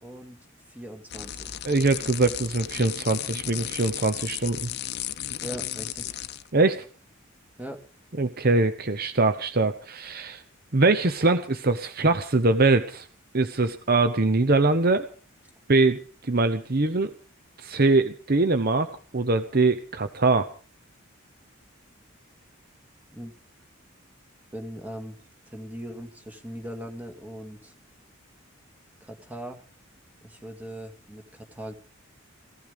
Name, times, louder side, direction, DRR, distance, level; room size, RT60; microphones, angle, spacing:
voice 1, 0.0-1.6 5.3-6.3 7.6-7.8 23.1-23.3 24.5-25.2 25.5-27.7 29.0-29.6 30.2-31.7, equal, 10° right, 4 dB, 2.0 m, -40 dB
sound 1, 1.1-6.5, left 11 dB, 50° left, 0.7 m, -34 dB
voice 2, 1.6-4.7 6.5-6.9 8.2-10.4 10.7-13.1 13.3-15.1 15.7-17.1 17.6-18.9 19.1-20.5, right 3 dB, 45° right, 9 dB, 0.9 m, -22 dB
16.0 x 15.5 x 5.2 m, 0.41 s
head